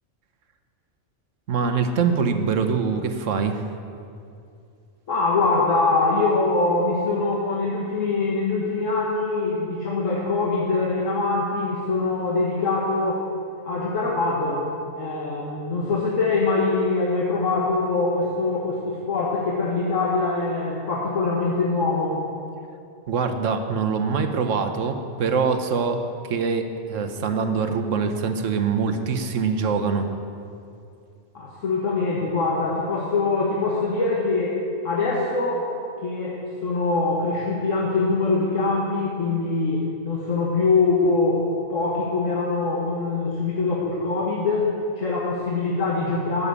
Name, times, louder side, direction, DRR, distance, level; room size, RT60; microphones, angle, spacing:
voice 1, 1.5-3.6 23.1-30.1, right 5 dB, 70° right, 7 dB, 1.2 m, -24 dB
voice 2, 5.1-13.2 13.7-14.6 15.0-22.2 31.3-34.6 34.8-35.7 36.0-41.4 41.7-44.7 45.0-46.5, left 3 dB, 70° left, -3 dB, 1.6 m, -23 dB
12.0 x 7.1 x 8.3 m, 2.5 s
omnidirectional pair, 1.4 m